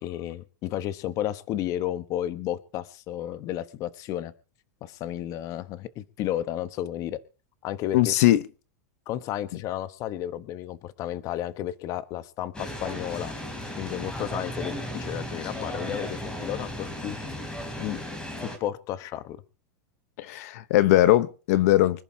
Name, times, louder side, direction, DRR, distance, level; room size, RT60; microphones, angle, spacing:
voice 1, 0.0-4.3 4.8-7.2 7.6-8.1 9.1-13.3 13.8-17.2 17.8-18.0 18.4-19.4, left 12 dB, 35° left, 1.0 m, -32 dB
voice 2, 7.9-8.4 20.2-22.0, left 15 dB, 60° left, 0.9 m, -20 dB
sound 1, 12.5-18.6, equal, 10° left, 3.4 m, -35 dB
25.0 x 11.0 x 2.8 m
supercardioid pair, 150°, 10 cm